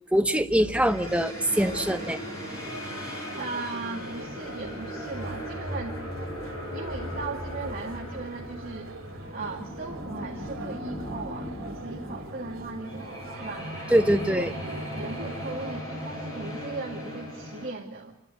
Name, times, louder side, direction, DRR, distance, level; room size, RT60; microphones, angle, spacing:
voice 1, 0.1-2.2 13.9-14.5, right 1 dB, 5° right, 7 dB, 1.0 m, -23 dB
sound 1, 0.6-15.8, right 2 dB, 70° right, 3.1 m, -43 dB
sound 2, 0.7-17.7, equal, 15° left, 7.6 m, -37 dB
voice 2, 3.1-6.0 6.7-8.9 9.3-13.7 14.3-14.4 14.9-18.2, right 3 dB, 45° right, -2 dB, 2.5 m, -37 dB
28.5 x 12.5 x 9.4 m, 0.82 s
head